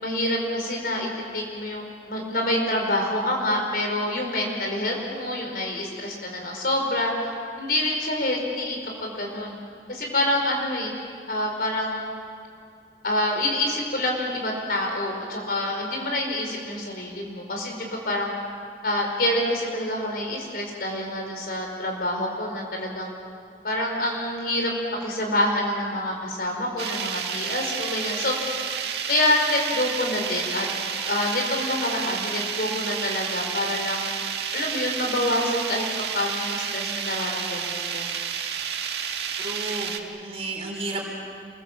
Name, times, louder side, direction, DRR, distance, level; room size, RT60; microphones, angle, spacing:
voice 1, 0.0-9.6 9.9-10.9 11.3-12.1 13.0-18.3 18.8-23.1 23.6-24.7 25.0-28.6 29.1-30.7 31.0-34.1 34.5-35.8 36.1-38.1, left 1 dB, 55° left, 1 dB, 5.0 m, -27 dB
sound 1, 26.8-40.0, right 7 dB, 75° right, 1.8 m, -30 dB
voice 2, 39.4-41.1, right 2 dB, 35° right, 0 dB, 4.3 m, -32 dB
28.0 x 23.0 x 7.4 m, 2.3 s
head